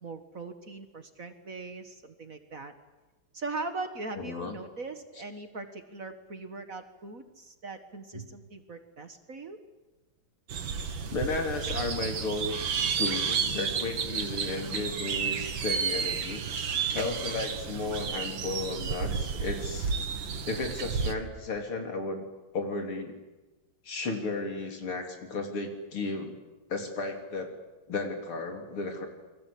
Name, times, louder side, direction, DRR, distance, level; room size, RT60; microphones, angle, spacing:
voice 1, 0.0-2.7 3.3-9.6, right 3 dB, 40° right, 8 dB, 1.9 m, -40 dB
voice 2, 4.2-4.5 8.1-8.3 11.1-12.5 13.0-19.9 20.4-22.3 22.5-23.2 23.8-26.4 26.7-27.5 27.9-29.1, left 3 dB, 75° left, 4 dB, 4.4 m, -34 dB
sound 1, 10.5-21.1, right 6 dB, 65° right, 2.3 m, -31 dB
29.0 x 23.0 x 8.6 m, 1.1 s
omnidirectional pair, 2.4 m